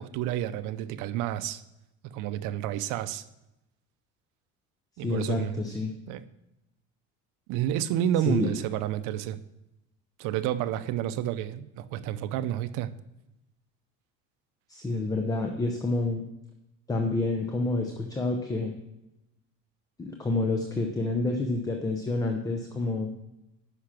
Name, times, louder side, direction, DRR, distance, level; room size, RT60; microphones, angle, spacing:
voice 1, 0.0-1.6 2.0-3.2 5.0-5.6 6.1-6.2 7.5-9.4 10.2-12.9, right 11 dB, 75° right, 12 dB, 0.7 m, -30 dB
voice 2, 5.0-5.9 8.3-8.5 14.7-16.2 16.9-18.7 20.0-23.1, left 2 dB, 10° left, 4 dB, 0.6 m, -28 dB
9.9 x 5.9 x 5.9 m, 0.90 s
cardioid pair, 160°, 32 cm